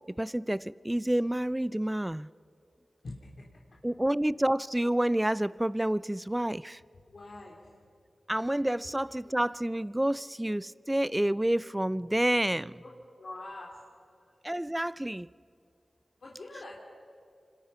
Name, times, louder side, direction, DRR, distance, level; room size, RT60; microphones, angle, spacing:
voice 1, 0.2-2.3 3.8-6.8 8.3-12.7 14.4-15.3, right 1 dB, 15° right, 0.5 m, -29 dB
voice 2, 7.1-7.6 12.8-12.9 13.2-13.8 16.2-16.8, left 2 dB, 70° left, 3.2 m, -43 dB
27.0 x 26.0 x 5.7 m
cardioid pair, 40°, 0 cm